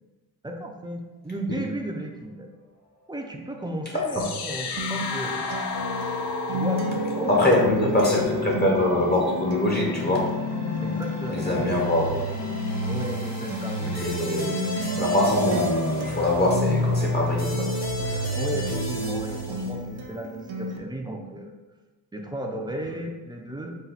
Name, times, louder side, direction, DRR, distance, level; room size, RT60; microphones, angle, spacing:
voice 1, 0.4-2.5 3.1-5.5 6.5-6.8 7.1-7.4 7.7-7.9 8.2-8.4 10.8-11.7 12.9-14.3 18.4-21.5 22.1-23.8, right 1 dB, 10° right, 2 dB, 0.5 m, -34 dB
sound 1, 3.4-19.7, equal, 45° left, 1.4 m, -37 dB
voice 2, 3.9-4.3 7.3-10.3 11.3-12.3 13.8-14.6 15.0-17.7 18.1-18.4, left 1 dB, 25° left, -2 dB, 0.8 m, -24 dB
sound 2, 4.0-20.0, left 2 dB, 90° left, 0.7 m, -31 dB
Acoustic guitar, 4.8-20.8, equal, 90° right, 0.7 m, -35 dB
4.2 x 2.3 x 4.0 m, 1.3 s
cardioid pair, 100°, 38 cm